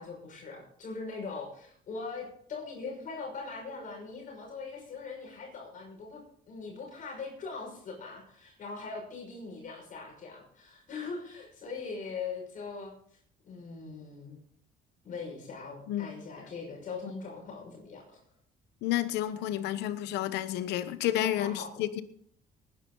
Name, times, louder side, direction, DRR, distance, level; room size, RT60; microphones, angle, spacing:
voice 1, 0.0-12.9 13.4-14.4 15.0-18.2 21.2-21.8, left 4 dB, 50° left, 6.0 m, -41 dB
voice 2, 18.8-22.0, left 13 dB, 85° left, 1.1 m, -30 dB
19.5 x 10.5 x 3.9 m
cardioid pair, 110°, 17 cm